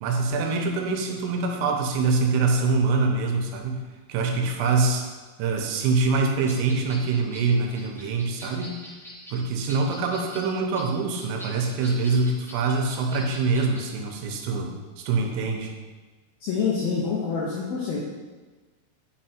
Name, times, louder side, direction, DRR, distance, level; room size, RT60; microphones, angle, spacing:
voice 1, 0.0-3.8 4.1-5.1 5.4-8.8 9.3-15.7, right 4 dB, 85° right, 3 dB, 3.6 m, -24 dB
sound 1, 6.4-13.8, equal, 5° left, 0.4 m, -44 dB
voice 2, 16.4-18.0, left 5 dB, 75° left, -5 dB, 2.2 m, -26 dB
8.6 x 5.9 x 4.4 m, 1.3 s
omnidirectional pair, 5.7 m